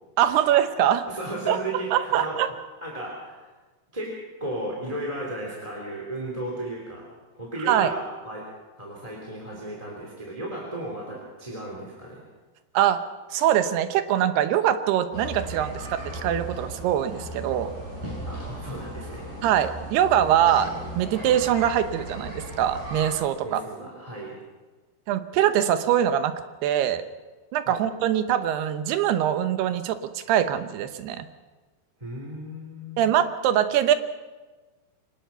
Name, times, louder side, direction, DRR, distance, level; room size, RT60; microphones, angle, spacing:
voice 1, 0.2-1.1 1.5-1.6 1.9-2.5 7.7-7.9 12.7-17.7 19.4-23.6 25.1-27.0 27.5-31.3 33.0-34.0, right 10 dB, 85° right, 10 dB, 3.0 m, -23 dB
voice 2, 1.1-2.4 2.8-3.5 3.9-4.1 4.4-7.1 7.3-8.5 8.8-12.2 18.3-19.3 23.4-24.4 27.6-27.8 32.0-33.1, right 1 dB, 10° right, -3 dB, 3.1 m, -35 dB
sound 1, 15.1-23.1, right 1 dB, 50° right, 8.5 m, -37 dB
24.0 x 19.5 x 5.7 m, 1.3 s
omnidirectional pair, 4.6 m